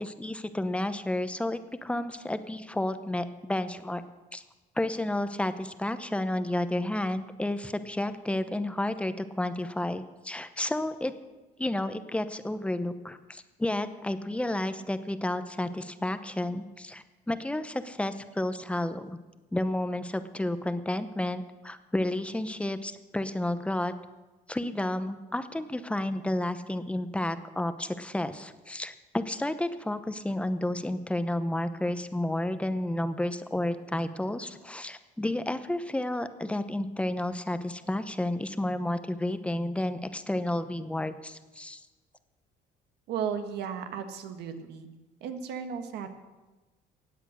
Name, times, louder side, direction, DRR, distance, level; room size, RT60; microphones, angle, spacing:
voice 1, 0.0-4.0 4.3-4.4 4.8-11.1 11.6-19.1 19.5-23.9 24.5-41.8, left 1 dB, 5° left, 11 dB, 0.8 m, -31 dB
voice 2, 43.1-44.9 45.2-46.1, right 7 dB, 80° right, 7 dB, 1.5 m, -35 dB
16.5 x 9.0 x 6.4 m, 1.2 s
cardioid pair, 110°, 17 cm